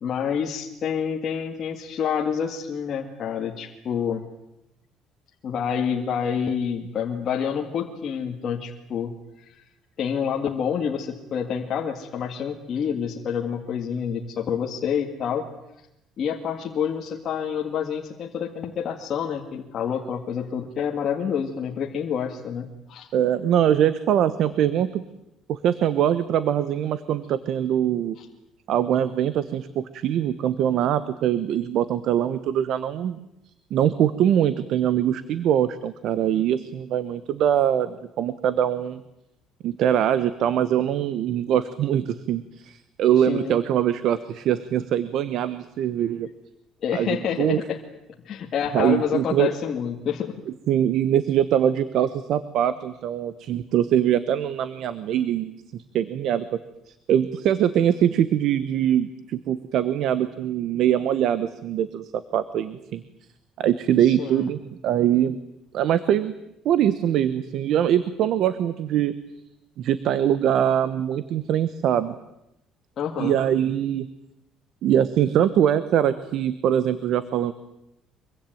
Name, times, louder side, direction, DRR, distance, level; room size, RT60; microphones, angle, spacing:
voice 1, 0.0-4.2 5.4-9.6 10.0-15.5 16.2-23.1 28.2-28.3 43.2-43.6 46.8-47.8 48.2-50.3 64.0-64.5 73.0-73.4, left 7 dB, 40° left, 0 dB, 2.0 m, -28 dB
voice 2, 23.1-25.0 25.5-28.2 28.7-33.2 33.7-39.0 39.6-46.3 46.9-47.6 48.7-49.5 50.7-56.5 56.9-63.0 63.6-65.4 65.7-66.3 66.6-69.1 69.8-72.1 73.2-74.1 74.8-77.5, right 10 dB, 55° right, 14 dB, 1.1 m, -23 dB
24.5 x 23.5 x 9.2 m, 0.86 s
cardioid pair, 170°, 0 cm